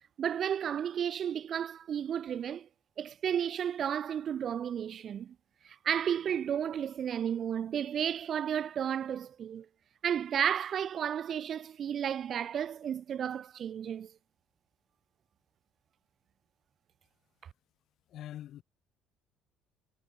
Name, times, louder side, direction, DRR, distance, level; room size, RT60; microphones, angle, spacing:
voice 1, 0.2-2.7 3.0-5.3 5.6-9.7 10.0-14.1, right 9 dB, 45° right, 0.7 m, -33 dB
voice 2, 18.1-18.6, left 12 dB, 55° left, 2.1 m, -43 dB
cardioid pair, 125°, 0 cm